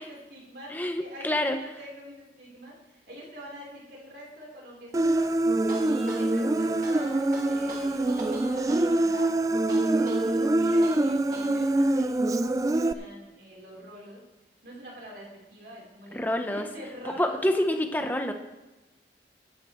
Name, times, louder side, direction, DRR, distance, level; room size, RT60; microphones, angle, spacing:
voice 1, 0.0-9.5 9.9-14.2 14.6-17.8, equal, 75° right, -4 dB, 4.0 m, -45 dB
voice 2, 0.7-1.6 16.1-16.6 17.2-18.3, left 1 dB, 10° left, 6 dB, 0.8 m, -27 dB
Human voice, 4.9-12.9, right 2 dB, 20° right, 0.3 m, -25 dB
sound 1, 5.6-11.6, right 2 dB, 50° right, 1.8 m, -43 dB
16.0 x 12.0 x 3.2 m, 1.1 s
head